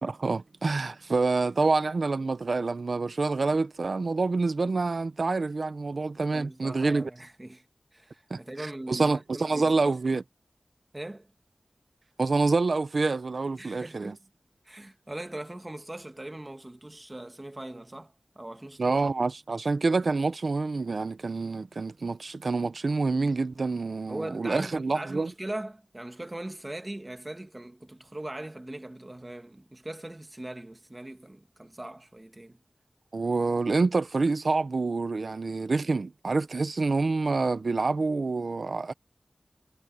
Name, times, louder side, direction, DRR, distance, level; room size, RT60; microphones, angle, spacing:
voice 1, 0.0-7.1 8.3-8.4 8.9-10.2 12.2-14.1 18.8-25.3 33.1-38.9, right 3 dB, 70° right, 1.0 m, -27 dB
voice 2, 6.3-7.6 7.9-10.2 10.9-11.3 13.6-14.2 14.7-19.0 24.1-32.6, right 1 dB, 25° right, 1.9 m, -40 dB
wide cardioid pair, 80°, 0 cm